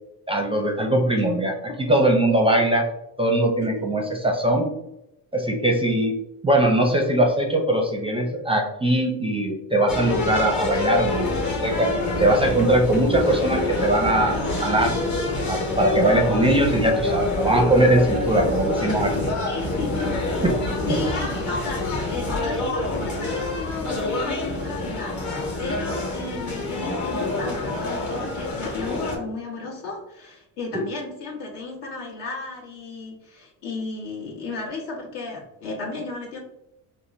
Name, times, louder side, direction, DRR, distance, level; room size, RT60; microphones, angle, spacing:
voice 1, 0.3-2.9 3.2-4.7 5.3-6.2 6.4-11.3 11.6-11.9 12.2-15.0 15.5-19.1 20.4-20.5 20.9-21.0 30.7-30.8, right 1 dB, 15° right, 1 dB, 0.5 m, -21 dB
sound 1, 9.9-29.2, left 2 dB, 40° left, 1.0 m, -26 dB
voice 2, 19.4-20.1 20.8-25.2 25.6-36.4, left 3 dB, 70° left, -3 dB, 1.3 m, -34 dB
3.4 x 2.1 x 2.6 m, 0.87 s
supercardioid pair, 75°, 44 cm